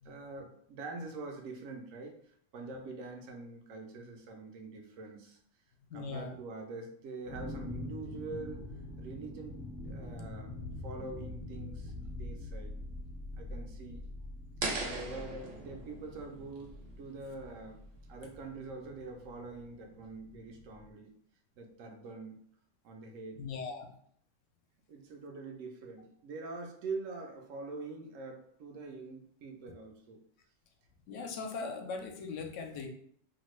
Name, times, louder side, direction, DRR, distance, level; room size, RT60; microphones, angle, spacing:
voice 1, 0.0-5.4 5.9-8.7 9.0-10.5 10.8-12.7 13.4-14.1 14.7-17.8 18.1-21.1 21.6-22.4 22.8-23.4 24.9-30.2, right 3 dB, 85° right, 3 dB, 1.0 m, -44 dB
voice 2, 5.9-6.4 10.1-10.2 23.4-23.9 31.1-32.9, left 4 dB, 75° left, 4 dB, 0.9 m, -40 dB
sound 1, 7.2-20.9, left 1 dB, 50° left, 0.7 m, -45 dB
sound 2, 14.6-17.6, right 3 dB, 55° right, 0.6 m, -40 dB
2.8 x 2.1 x 3.0 m, 0.62 s
omnidirectional pair, 1.3 m